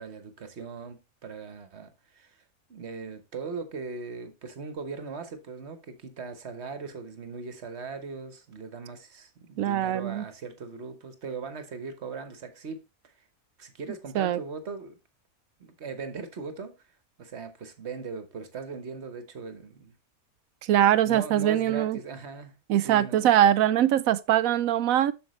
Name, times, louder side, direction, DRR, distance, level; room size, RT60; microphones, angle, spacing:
voice 1, 0.0-2.4 2.7-13.1 13.6-15.0 15.6-16.7 17.2-19.9 21.0-23.3, right 4 dB, 50° right, 1.2 m, -39 dB
voice 2, 9.6-10.2 14.2-14.4 20.7-22.0 22.7-25.1, right 11 dB, 75° right, 0.9 m, -22 dB
7.8 x 6.5 x 3.1 m
omnidirectional pair, 1.6 m